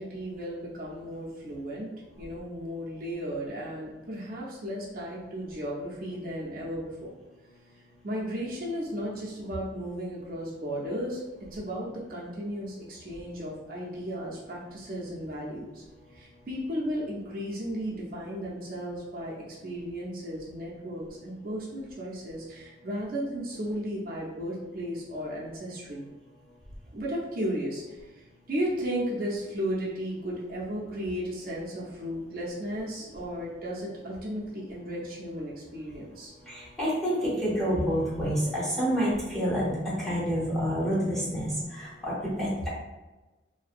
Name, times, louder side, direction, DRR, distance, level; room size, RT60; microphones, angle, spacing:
voice 1, 0.0-7.1 8.0-11.2 11.5-15.8 16.1-26.1 26.9-36.3, equal, 50° right, -5 dB, 0.5 m, -35 dB
voice 2, 36.5-42.7, equal, ahead, -8 dB, 0.7 m, -28 dB
2.5 x 2.1 x 2.4 m, 1.1 s
head